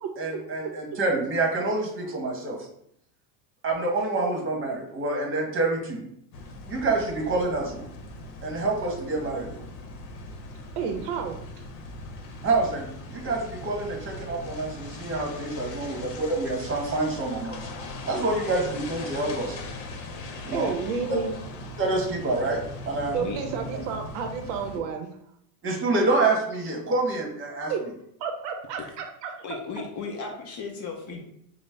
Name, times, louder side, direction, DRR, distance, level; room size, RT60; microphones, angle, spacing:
voice 1, 0.2-2.7 3.6-6.0 6.7-7.8 8.4-9.6 12.4-17.6 18.0-19.6 20.5-20.7 21.1-21.2 21.8-23.2 25.6-27.7, right 2 dB, 25° right, 0 dB, 1.0 m, -27 dB
sound 1, 6.3-24.8, left 2 dB, 90° left, 0.8 m, -40 dB
voice 2, 10.8-11.4 20.5-21.3 23.1-25.1 27.7-27.8 28.2-29.3, right 6 dB, 55° right, 4 dB, 0.6 m, -31 dB
voice 3, 29.4-31.3, left 5 dB, 40° left, 2 dB, 0.5 m, -36 dB
5.0 x 2.0 x 3.3 m, 0.71 s
supercardioid pair, 125°, 49 cm